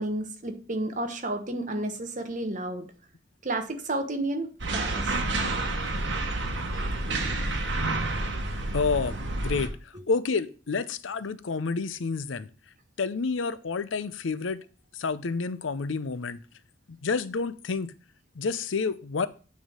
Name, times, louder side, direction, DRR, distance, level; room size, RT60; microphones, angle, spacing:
voice 1, 0.0-2.9 3.4-5.2, right 2 dB, 40° right, 1.1 m, -31 dB
sound 1, 4.6-9.7, right 2 dB, 70° right, 1.4 m, -29 dB
voice 2, 8.7-9.2 9.4-12.5 13.0-14.6 14.9-16.4 16.9-17.9 18.4-19.3, left 4 dB, 80° left, 0.6 m, -29 dB
8.8 x 3.6 x 6.1 m
head